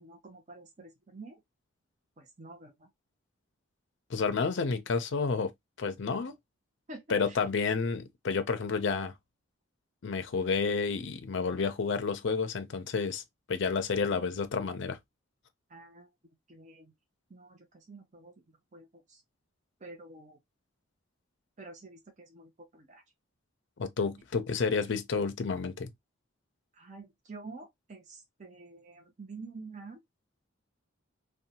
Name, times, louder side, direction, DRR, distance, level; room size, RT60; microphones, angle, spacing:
voice 1, 0.0-1.4 2.2-2.9 6.9-7.4 15.7-16.1 16.5-16.9 17.3-19.2 19.8-20.4 21.6-23.0 26.7-30.0, right 3 dB, 35° right, 0.6 m, -48 dB
voice 2, 4.1-5.5 5.8-6.3 7.1-9.1 10.0-13.2 13.5-15.0 23.8-25.9, left 5 dB, 60° left, 0.5 m, -30 dB
2.6 x 2.2 x 2.7 m
head